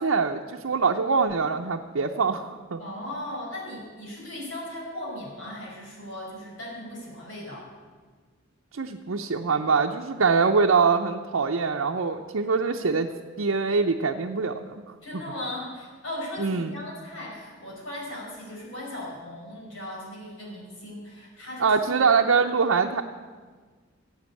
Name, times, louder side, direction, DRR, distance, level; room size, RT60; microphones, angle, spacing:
voice 1, 0.0-2.8 8.7-13.1 13.4-14.9 16.4-16.7 21.6-23.0, right 5 dB, 80° right, 2 dB, 0.7 m, -24 dB
voice 2, 2.8-7.7 15.0-22.0, left 1 dB, 70° left, -3 dB, 4.8 m, -37 dB
15.0 x 8.1 x 8.3 m, 1.5 s
head